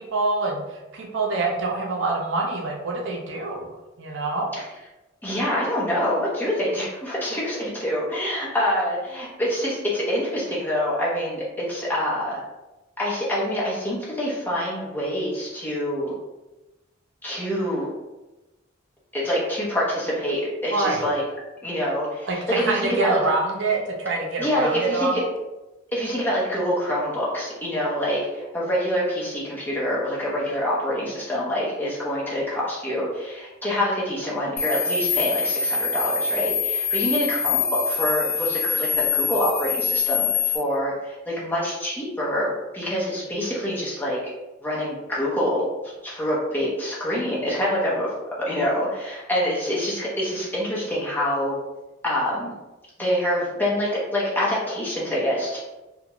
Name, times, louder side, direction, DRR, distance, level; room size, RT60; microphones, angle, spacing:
voice 1, 0.0-3.7 4.0-4.5 20.7-21.1 22.3-25.2, right 3 dB, 65° right, -1 dB, 0.5 m, -25 dB
voice 2, 5.2-12.4 13.0-16.1 17.2-17.9 19.1-21.2 21.6-23.2 24.4-25.2 25.9-42.5 42.7-44.2 44.6-45.7 46.0-48.1 48.4-51.6 52.0-52.5 53.0-55.6, equal, 10° left, -7 dB, 0.7 m, -26 dB
sound 1, 34.6-40.6, left 6 dB, 85° left, 0.4 m, -24 dB
2.4 x 2.2 x 2.9 m, 1.0 s
head